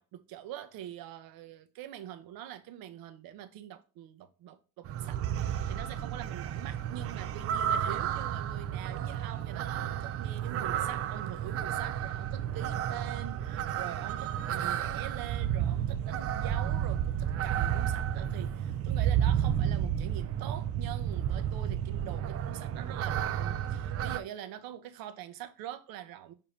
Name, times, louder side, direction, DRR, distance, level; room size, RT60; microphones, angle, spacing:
voice 1, 0.0-26.3, right 11 dB, 75° right, 0.8 m, -44 dB
sound 1, 4.8-24.2, right 10 dB, 40° right, 0.4 m, -32 dB
6.9 x 2.9 x 4.9 m
cardioid pair, 145°, 36 cm